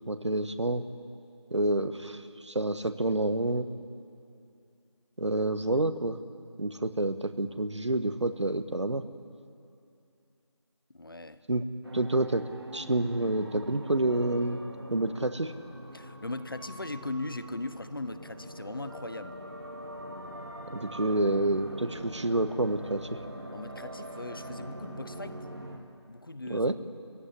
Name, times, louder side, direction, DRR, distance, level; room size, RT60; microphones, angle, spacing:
voice 1, 0.1-0.8 1.5-3.7 5.2-6.2 6.6-9.0 11.5-11.6 11.9-12.4 12.7-14.6 14.9-15.5 20.7-23.2 26.5-26.7, right 2 dB, 75° right, 10 dB, 1.4 m, -28 dB
voice 2, 10.9-11.4 15.9-19.4 23.5-25.5 26.1-26.9, left 2 dB, 50° left, 13 dB, 0.9 m, -39 dB
sound 1, 11.8-25.8, right 1 dB, 55° right, 2.6 m, -43 dB
24.0 x 16.0 x 9.9 m, 2.5 s
figure-of-eight pair, 175°, 15 cm